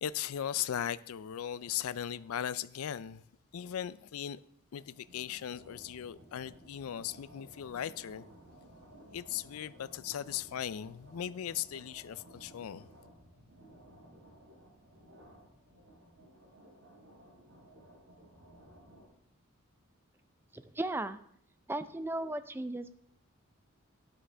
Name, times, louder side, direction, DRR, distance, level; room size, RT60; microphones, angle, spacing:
voice 1, 0.0-3.2 3.5-4.4 4.7-8.2 9.1-12.9, left 10 dB, 85° left, 0.4 m, -38 dB
sound 1, 4.9-19.1, equal, 80° right, 4.5 m, -57 dB
voice 2, 20.5-21.2 21.7-22.9, right 2 dB, 10° right, 0.4 m, -36 dB
12.5 x 10.0 x 3.4 m
head